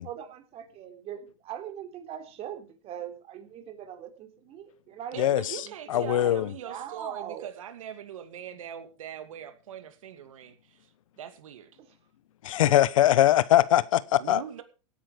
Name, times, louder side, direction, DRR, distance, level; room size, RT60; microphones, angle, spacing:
voice 1, 0.0-5.4 5.9-6.4 6.7-7.5 11.8-11.9 12.6-12.7, right 10 dB, 35° right, 3.5 m, -41 dB
voice 2, 5.1-10.9 11.2-11.8 14.2-14.6, right 9 dB, 85° right, 2.4 m, -41 dB
voice 3, 5.9-6.5 12.4-14.4, left 13 dB, 80° left, 0.9 m, -21 dB
17.5 x 10.5 x 5.0 m
hypercardioid pair, 125°, 17 cm